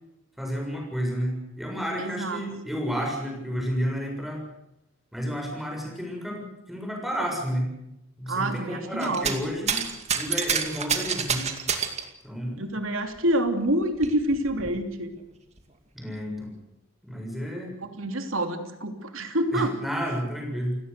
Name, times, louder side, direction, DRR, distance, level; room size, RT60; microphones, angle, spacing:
voice 1, 0.4-4.4 5.1-7.7 8.2-9.8 10.2-11.5 12.2-12.6 15.9-16.5 17.0-17.7 19.5-20.8, equal, ahead, 1 dB, 7.1 m, -31 dB
voice 2, 2.0-2.4 8.3-9.3 12.6-15.1 17.8-19.8, right 1 dB, 80° right, 6 dB, 3.0 m, -27 dB
sound 1, 9.0-9.4 9.7-12.1 13.2-13.3 13.7-14.7 15.6-15.7, right 6 dB, 35° right, 2.4 m, -28 dB
29.5 x 18.0 x 6.9 m, 0.84 s
head